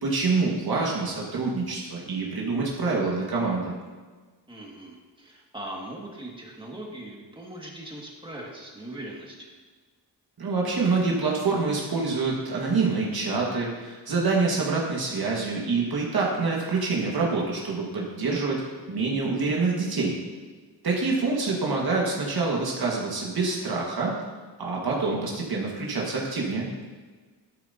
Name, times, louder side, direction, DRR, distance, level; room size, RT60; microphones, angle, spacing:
voice 1, 0.0-3.7 10.4-18.6 18.9-20.2 20.8-24.2 24.6-26.7, right 3 dB, 60° right, -3 dB, 1.8 m, -26 dB
voice 2, 4.5-9.5 21.2-21.6, right 1 dB, 10° right, -2 dB, 2.0 m, -40 dB
11.5 x 8.8 x 2.8 m, 1.4 s
cardioid pair, 90°, 41 cm